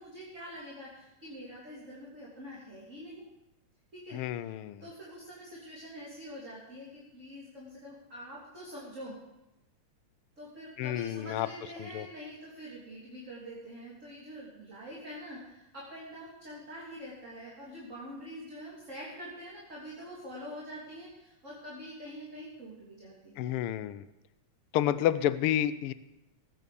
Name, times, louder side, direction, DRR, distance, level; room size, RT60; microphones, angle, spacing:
voice 1, 0.0-3.2 3.9-9.2 10.4-23.4, equal, 25° right, -6 dB, 3.4 m, -45 dB
voice 2, 4.1-4.8 10.8-11.5 11.8-12.1 23.4-24.0 24.7-25.9, left 11 dB, 80° left, 14 dB, 1.3 m, -30 dB
19.0 x 9.4 x 6.9 m, 0.95 s
omnidirectional pair, 3.3 m